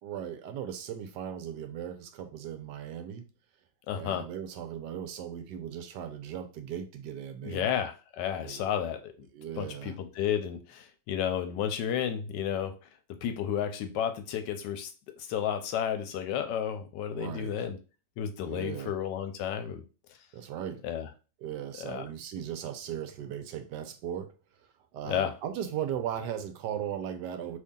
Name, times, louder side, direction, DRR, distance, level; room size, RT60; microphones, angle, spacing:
voice 1, 0.0-3.3 3.9-7.7 8.4-8.7 9.3-10.0 17.1-17.7 18.4-18.9 20.3-20.8 21.4-24.3 24.6-27.6, right 9 dB, 80° right, 1.1 m, -37 dB
voice 2, 3.9-4.3 7.4-9.0 9.6-12.7 13.2-14.9 15.2-17.8 18.2-19.8 20.8-21.1 21.9-22.0 25.0-25.3, left 9 dB, 80° left, 1.2 m, -32 dB
3.0 x 2.7 x 3.6 m
omnidirectional pair, 1.9 m